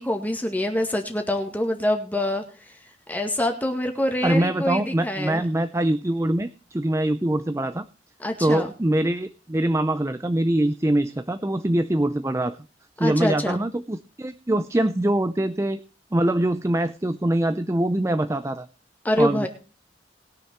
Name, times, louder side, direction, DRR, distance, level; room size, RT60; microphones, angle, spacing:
voice 1, 0.0-2.4 3.1-5.4 8.2-8.7 13.0-13.6 19.0-19.5, left 1 dB, 10° left, 4 dB, 1.9 m, -25 dB
voice 2, 4.2-7.9 8.4-12.6 13.0-15.8 16.1-18.7 19.2-19.5, right 1 dB, 15° right, 11 dB, 0.5 m, -23 dB
20.5 x 6.9 x 4.4 m, 0.35 s
head